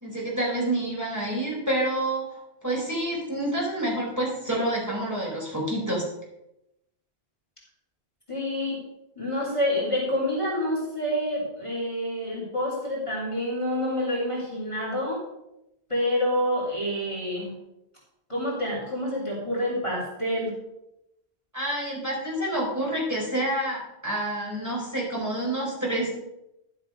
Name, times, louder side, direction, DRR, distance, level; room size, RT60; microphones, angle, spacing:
voice 1, 0.0-2.4 2.6-6.1 21.5-26.2, right 1 dB, 15° right, -5 dB, 4.5 m, -28 dB
voice 2, 8.3-8.8 9.2-15.2 15.9-17.5 18.3-20.5, left 1 dB, 30° left, -6 dB, 3.0 m, -27 dB
11.5 x 7.2 x 5.2 m, 0.88 s
omnidirectional pair, 1.1 m